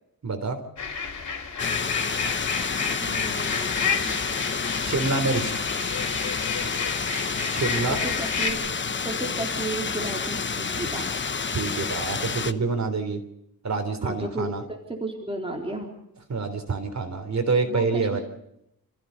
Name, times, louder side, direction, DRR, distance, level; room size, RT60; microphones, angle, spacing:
voice 1, 0.2-0.6 4.8-5.5 7.5-8.0 11.5-13.2 13.6-14.6 16.3-18.2, right 4 dB, 45° right, 7 dB, 3.5 m, -26 dB
sound 1, 0.8-8.5, left 5 dB, 50° left, 4.8 m, -30 dB
sound 2, 1.6-12.5, left 5 dB, 30° left, 1.0 m, -29 dB
voice 2, 3.0-4.2 7.9-8.7 9.0-11.1 14.0-15.9 17.6-18.2, right 2 dB, 15° right, 0 dB, 3.8 m, -34 dB
28.5 x 15.5 x 6.9 m, 0.81 s
wide cardioid pair, 120°, 37 cm